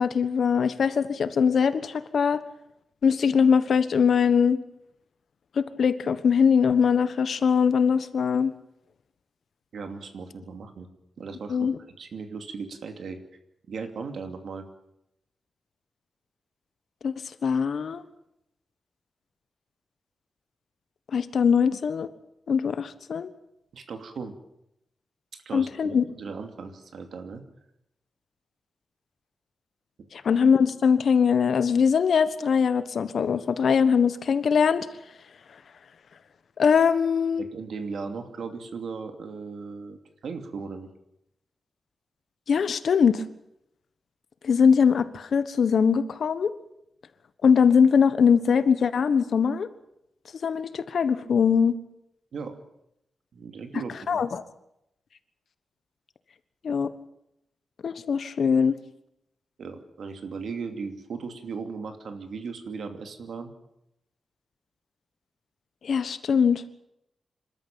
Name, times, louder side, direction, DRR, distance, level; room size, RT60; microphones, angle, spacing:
voice 1, 0.0-2.4 3.0-4.6 5.6-8.5 11.5-11.8 17.0-17.1 17.4-18.0 21.1-22.1 22.5-23.3 25.5-26.0 30.1-34.9 36.6-37.4 42.5-43.2 44.4-46.5 47.4-49.7 50.4-51.7 54.1-54.4 56.6-56.9 57.8-58.7 65.8-66.6, left 6 dB, 65° left, 13 dB, 1.3 m, -22 dB
voice 2, 9.7-10.9 11.2-11.7 12.0-13.2 13.7-14.7 23.7-24.3 25.3-27.4 30.0-30.1 37.4-40.9 52.3-52.6 53.3-54.2 59.6-63.5, right 5 dB, 70° right, 7 dB, 2.7 m, -37 dB
27.0 x 13.0 x 8.9 m, 0.81 s
wide cardioid pair, 170°, 0 cm